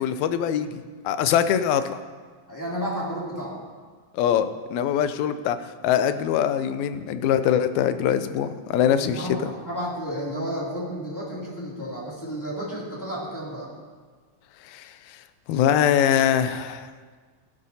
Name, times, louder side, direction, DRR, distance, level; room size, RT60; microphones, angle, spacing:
voice 1, 0.0-2.0 4.1-5.6 5.8-9.5 14.7-14.9 15.5-16.9, left 9 dB, 85° left, 11 dB, 2.0 m, -23 dB
voice 2, 2.5-3.6 8.8-13.7, equal, 5° left, -6 dB, 2.3 m, -32 dB
16.5 x 12.0 x 2.8 m, 1.5 s
omnidirectional pair, 3.3 m